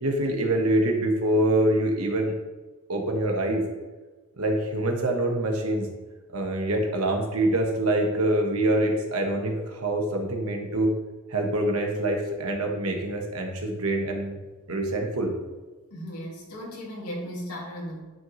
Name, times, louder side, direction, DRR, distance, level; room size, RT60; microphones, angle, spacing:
voice 1, 0.0-2.3 2.9-3.6 4.4-5.9 6.3-10.9 11.3-14.4 14.7-15.3, right 1 dB, 75° right, 1 dB, 1.3 m, -25 dB
voice 2, 15.9-18.0, equal, 85° left, -2 dB, 2.0 m, -36 dB
10.5 x 4.5 x 3.1 m, 1.2 s
head